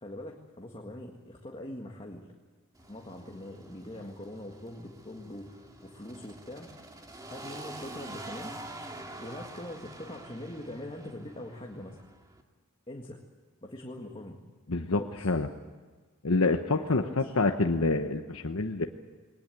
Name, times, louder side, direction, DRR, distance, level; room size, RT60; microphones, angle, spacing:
voice 1, 0.0-2.3 2.9-6.7 7.3-8.5 9.2-12.0 12.9-13.2 13.6-14.4 14.9-15.3 16.9-17.3, left 1 dB, 25° left, 1 dB, 1.8 m, -43 dB
sound 1, 2.7-12.4, right 1 dB, 15° right, 2.2 m, -46 dB
voice 2, 14.7-15.5 16.2-18.9, left 3 dB, 75° left, 5 dB, 1.0 m, -27 dB
22.0 x 19.0 x 9.1 m, 1.4 s
head